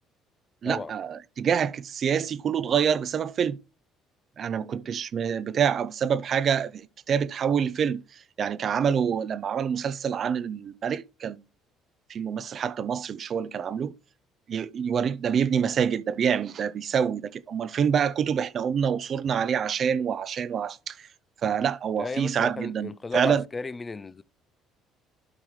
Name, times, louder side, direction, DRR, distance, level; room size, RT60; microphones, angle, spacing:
voice 1, 0.6-3.6 4.4-11.4 12.1-13.9 14.5-21.1 21.4-23.4, right 7 dB, 45° right, 0.5 m, -26 dB
voice 2, 22.0-24.2, left 4 dB, 20° left, 0.3 m, -35 dB
12.0 x 4.8 x 3.1 m
cardioid pair, 120°, 0 cm